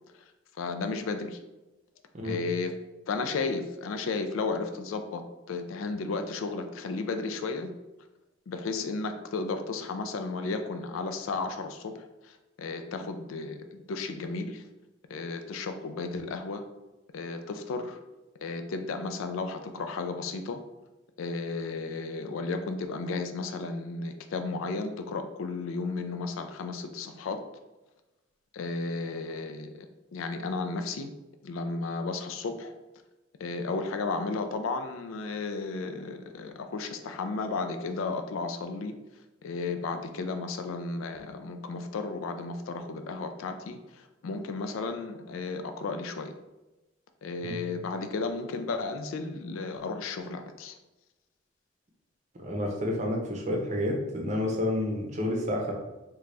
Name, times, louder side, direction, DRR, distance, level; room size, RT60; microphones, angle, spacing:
voice 1, 0.6-1.4 2.2-2.8 3.1-5.2 5.5-7.7 8.5-14.6 15.1-16.6 17.1-18.0 18.4-20.6 21.2-27.4 28.5-29.9 30.1-31.1 31.4-32.7 33.4-39.0 39.4-46.3 47.2-50.8, left 3 dB, 85° left, 7 dB, 0.4 m, -33 dB
voice 2, 52.4-55.7, left 1 dB, 35° right, 0 dB, 0.6 m, -29 dB
3.8 x 2.3 x 3.2 m, 1.1 s
head